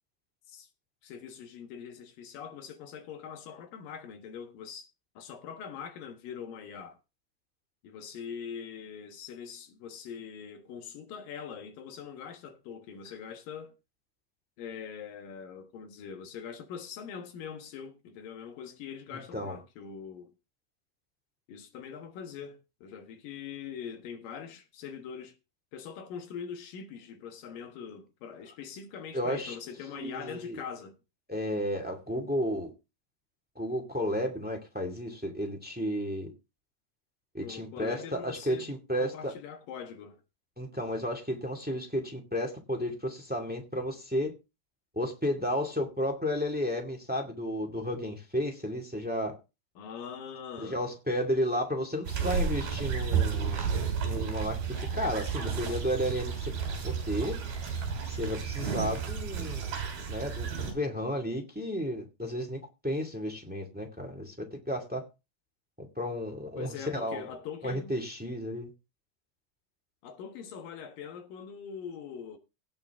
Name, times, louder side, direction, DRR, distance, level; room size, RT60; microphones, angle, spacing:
voice 1, 1.0-4.9 5.2-7.0 7.8-13.7 14.6-20.3 21.5-25.3 25.7-31.0 37.4-38.7 39.0-40.2 49.8-50.8 66.6-68.0 70.0-72.4, left 7 dB, 70° left, 2.9 m, -42 dB
voice 2, 29.1-29.5 29.9-30.6 31.3-32.7 33.5-36.3 37.3-39.3 40.6-44.3 44.9-49.4 50.6-53.6 54.0-56.5 56.8-57.4 58.0-59.7 60.1-65.0 65.8-67.2 67.6-68.7, equal, 5° right, 0.7 m, -33 dB
sound 1, 52.1-60.7, right 6 dB, 70° right, 5.1 m, -32 dB
18.0 x 6.7 x 3.6 m
omnidirectional pair, 4.4 m